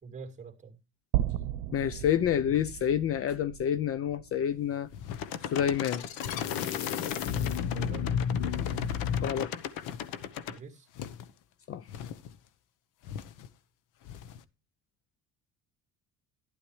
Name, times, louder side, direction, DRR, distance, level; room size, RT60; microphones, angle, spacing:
voice 1, 0.0-0.8 7.7-8.1 10.5-10.9, right 5 dB, 20° right, 2.5 m, -45 dB
sound 1, 1.1-5.4, right 13 dB, 85° right, 0.9 m, -35 dB
voice 2, 1.7-4.9 5.4-6.0 9.2-9.5 11.7-11.8, left 9 dB, 40° left, 0.6 m, -28 dB
sound 2, 4.9-5.8 6.2-6.8 7.3-8.0 8.5-9.3 9.7-10.4 10.9-11.4 11.8-12.5 13.0-13.5 14.0-14.4, left 8 dB, 60° left, 1.0 m, -44 dB
sound 3, 5.1-10.6, left 8 dB, 80° left, 1.2 m, -32 dB
12.0 x 11.5 x 3.2 m
cardioid pair, 125°, 35 cm